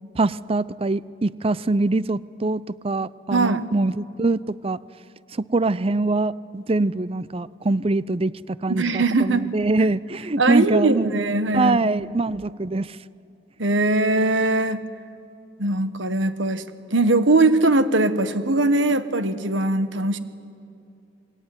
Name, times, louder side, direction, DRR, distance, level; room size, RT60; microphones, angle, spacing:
voice 1, 0.2-4.8 5.4-8.3 8.6-11.1 11.5-12.9, right 2 dB, 30° right, 18 dB, 0.5 m, -23 dB
voice 2, 3.3-3.6 8.7-9.5 10.4-11.9 13.6-14.8 15.6-16.6 16.9-20.2, right 2 dB, 80° right, 11 dB, 1.5 m, -21 dB
27.0 x 21.5 x 9.7 m, 2.6 s
head